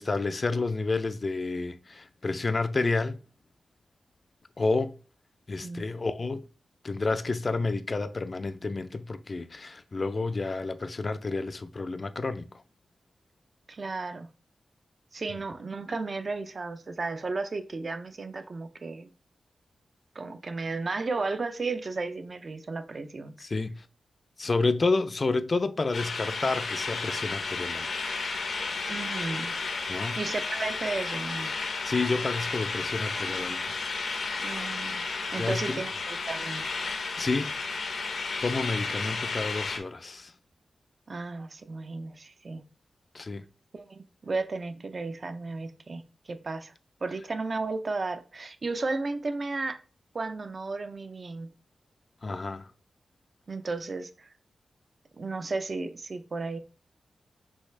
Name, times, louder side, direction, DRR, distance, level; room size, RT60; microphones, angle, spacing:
voice 1, 0.0-3.2 4.6-5.0 5.5-6.5 6.8-12.5 23.4-23.8 24.4-28.1 29.9-30.2 31.6-33.8 35.4-35.8 37.0-37.5 38.4-40.3 43.1-43.5 52.2-52.7, left 3 dB, 40° left, 0.4 m, -30 dB
voice 2, 13.7-14.3 15.1-19.1 20.1-23.3 28.9-29.5 30.2-31.5 34.4-35.1 35.3-36.7 41.1-42.6 43.7-46.7 47.0-49.8 50.1-51.5 53.5-54.3 55.2-56.6, right 3 dB, 45° right, 0.5 m, -34 dB
sound 1, 25.9-39.8, left 4 dB, 70° left, 0.7 m, -32 dB
6.2 x 2.4 x 3.3 m
wide cardioid pair, 100°, 0 cm